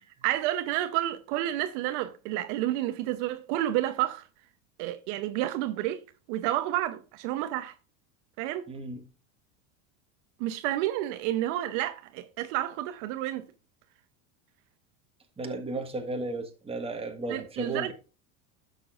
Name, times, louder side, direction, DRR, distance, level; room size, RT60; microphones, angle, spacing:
voice 1, 0.2-4.2 4.8-6.0 6.3-7.7 8.4-8.7 10.4-13.5 17.3-17.9, right 14 dB, 60° right, 0.9 m, -30 dB
voice 2, 8.7-9.0 15.4-17.9, right 2 dB, 15° right, 1.6 m, -34 dB
12.0 x 6.9 x 2.5 m
supercardioid pair, 120°, 40 cm